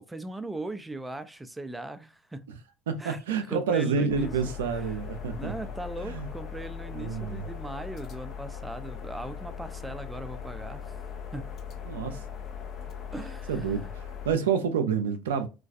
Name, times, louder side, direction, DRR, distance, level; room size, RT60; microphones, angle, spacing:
voice 1, 0.0-2.5 3.0-3.2 3.5-4.4 4.7-5.0 5.4-10.9 11.3-11.5 13.1-13.8, right 2 dB, 10° right, 0.3 m, -39 dB
voice 2, 2.9-5.5 6.0-6.3 6.9-7.5 11.9-12.2 13.5-15.5, right 6 dB, 85° right, 0.4 m, -28 dB
sound 1, 4.1-14.4, left 7 dB, 50° left, 0.6 m, -39 dB
2.3 x 2.2 x 2.5 m
hypercardioid pair, 80°, 0 cm